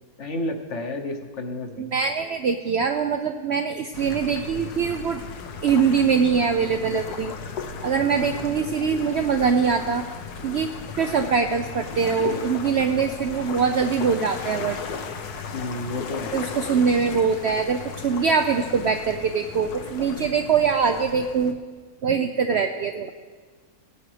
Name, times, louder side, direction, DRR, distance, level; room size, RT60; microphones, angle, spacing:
voice 1, 0.2-1.9 8.2-8.3 15.5-16.5, left 2 dB, 55° left, 5 dB, 1.2 m, -31 dB
voice 2, 1.8-5.2 5.6-7.3 7.8-10.0 10.4-10.7 11.0-14.8 16.3-21.6 22.0-23.1, right 6 dB, 65° right, 5 dB, 0.7 m, -23 dB
sound 1, 3.9-21.5, left 5 dB, 90° left, 1.5 m, -36 dB
17.5 x 10.0 x 3.3 m, 1.5 s
omnidirectional pair, 1.6 m